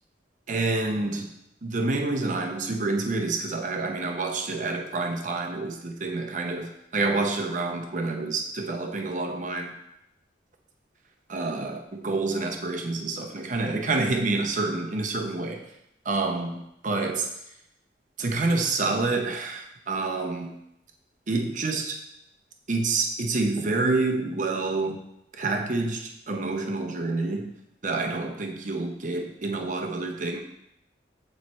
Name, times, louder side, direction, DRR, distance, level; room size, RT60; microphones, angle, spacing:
voice 1, 0.5-1.3 1.6-9.7 11.3-15.7 16.0-17.3 18.2-20.6 21.3-22.0 22.7-25.0 25.3-27.5 27.8-30.4, right 3 dB, 45° right, 3 dB, 0.7 m, -28 dB
7.7 x 3.2 x 4.2 m, 0.79 s
head